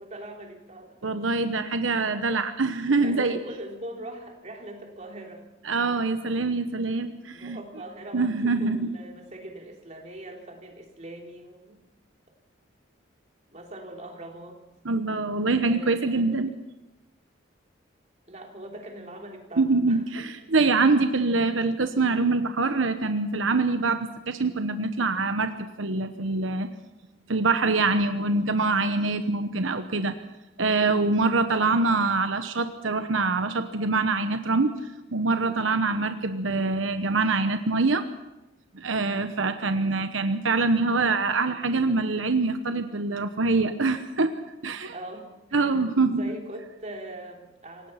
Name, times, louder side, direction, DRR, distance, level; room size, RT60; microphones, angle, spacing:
voice 1, 0.0-1.2 1.7-1.9 2.9-5.5 7.3-11.8 13.5-14.6 15.6-16.4 18.3-20.2 31.5-31.9 39.7-40.0 44.9-45.7 46.2-47.9, right 1 dB, 35° right, 1 dB, 3.5 m, -41 dB
voice 2, 1.0-3.4 5.6-7.6 8.1-8.9 14.8-16.5 19.6-25.5 25.8-26.7 27.3-30.1 30.6-34.7 35.1-38.0 38.7-44.3 44.6-44.9 45.5-46.2, right 3 dB, 90° right, 8 dB, 1.1 m, -24 dB
27.0 x 18.0 x 5.8 m, 0.98 s
head